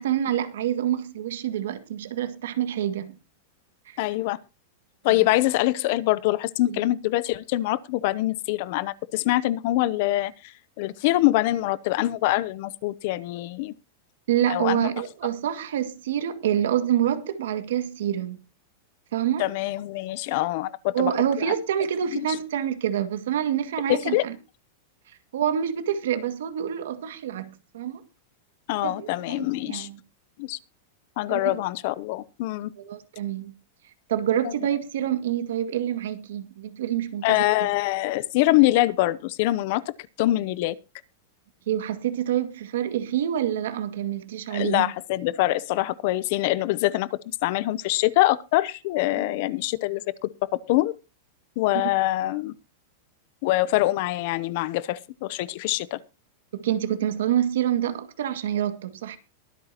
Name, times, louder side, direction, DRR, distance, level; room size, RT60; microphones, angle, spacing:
voice 1, 0.0-3.2 3.9-4.0 5.1-5.2 6.7-7.0 14.3-18.4 19.1-19.5 20.9-24.4 25.3-28.0 28.8-30.0 31.3-31.6 32.8-33.5 34.1-37.4 41.7-44.9 56.5-59.2, right 10 dB, 70° right, 2.1 m, -27 dB
voice 2, 4.0-4.4 5.0-10.3 10.8-13.7 14.5-14.9 19.4-21.1 22.1-22.2 23.9-24.2 28.7-29.9 30.4-30.6 31.2-32.7 34.4-34.5 37.2-40.8 44.5-47.1 47.4-50.3 50.7-50.9 51.6-52.5 53.4-56.0, left 17 dB, 40° left, 0.7 m, -24 dB
23.0 x 8.9 x 2.9 m
supercardioid pair, 180°, 0 cm